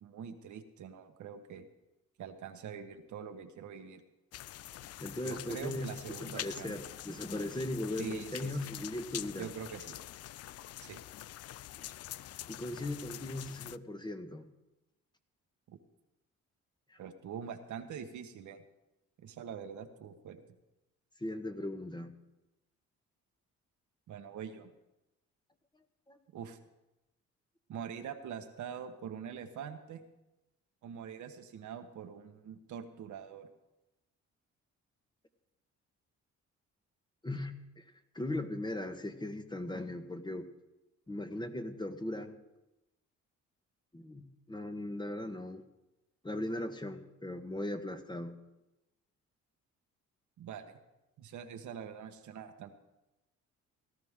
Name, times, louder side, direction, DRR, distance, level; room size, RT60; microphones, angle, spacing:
voice 1, 0.0-1.6 2.2-4.0 5.2-6.8 8.0-8.7 9.4-10.0 10.8-11.0 15.7-15.8 17.0-18.6 19.2-20.4 24.1-24.7 26.3-26.6 27.7-30.0 30.8-33.5 50.4-50.7 51.2-52.7, right 7 dB, 70° right, 6 dB, 1.4 m, -44 dB
sound 1, 4.3-13.8, left 13 dB, 55° left, 0.4 m, -45 dB
voice 2, 5.0-5.9 6.2-9.5 11.8-11.9 12.5-14.5 16.9-17.0 21.2-22.1 26.1-26.2 37.2-37.8 38.1-40.5 41.1-42.4 43.9-45.6 46.2-48.3, left 1 dB, 15° left, 7 dB, 1.3 m, -38 dB
18.0 x 13.0 x 3.7 m, 0.98 s
cardioid pair, 90°, 30 cm